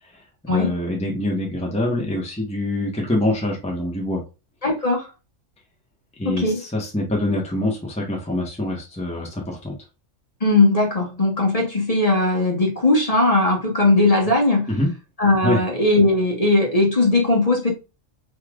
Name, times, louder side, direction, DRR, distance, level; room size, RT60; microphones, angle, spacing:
voice 1, 0.4-4.2 6.2-9.7 14.7-14.9 15.4-15.6, left 1 dB, 5° left, 1.2 m, -25 dB
voice 2, 4.6-5.1 6.2-6.6 10.4-14.7 15.2-17.7, left 2 dB, 30° left, 1.4 m, -18 dB
5.6 x 3.3 x 2.4 m
omnidirectional pair, 1.3 m